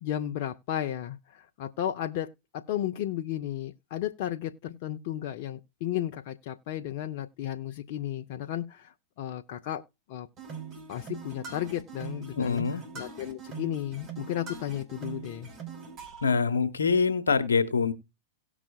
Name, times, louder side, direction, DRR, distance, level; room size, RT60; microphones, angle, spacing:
voice 1, 0.0-9.8 10.1-10.3 10.9-15.5, left 12 dB, 60° left, 0.7 m, -34 dB
sound 1, 10.4-16.3, right 5 dB, 40° right, 4.4 m, -42 dB
voice 2, 12.4-12.8 16.2-17.9, left 5 dB, 90° left, 1.1 m, -25 dB
17.5 x 6.1 x 2.4 m
hypercardioid pair, 105°, 0 cm